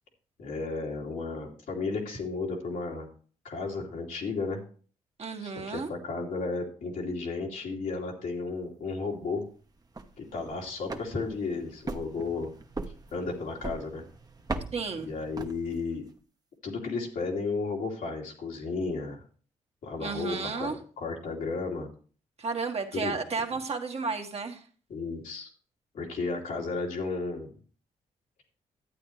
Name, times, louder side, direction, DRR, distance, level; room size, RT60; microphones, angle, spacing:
voice 1, 0.4-3.1 3.4-4.6 5.4-9.5 10.2-12.5 13.1-14.0 15.0-16.0 16.6-19.2 19.8-21.9 22.9-23.2 24.9-25.5 25.9-27.6, left 3 dB, 75° left, -1 dB, 2.8 m, -33 dB
voice 2, 5.2-5.9 14.7-15.1 20.0-20.8 22.4-24.6, right 4 dB, 50° right, 3 dB, 1.6 m, -32 dB
sound 1, 9.8-16.1, right 3 dB, 25° right, 1.1 m, -40 dB
12.0 x 8.6 x 3.2 m, 0.42 s
supercardioid pair, 55°, 14 cm